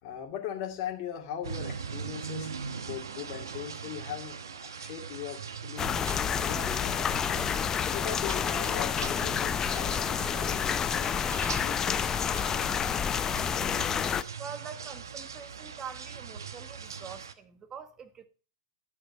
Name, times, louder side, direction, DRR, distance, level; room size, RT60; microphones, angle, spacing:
voice 1, 0.0-2.5 2.8-5.4 5.6-6.0 6.4-7.5 7.9-12.9, left 9 dB, 50° left, 2.4 m, -40 dB
sound 1, 1.4-17.3, right 6 dB, 80° right, 1.0 m, -41 dB
sound 2, 5.8-14.2, left 8 dB, 25° left, 0.6 m, -29 dB
voice 2, 14.4-18.3, right 6 dB, 25° right, 1.4 m, -44 dB
11.5 x 7.3 x 5.4 m
hypercardioid pair, 100°, 2 cm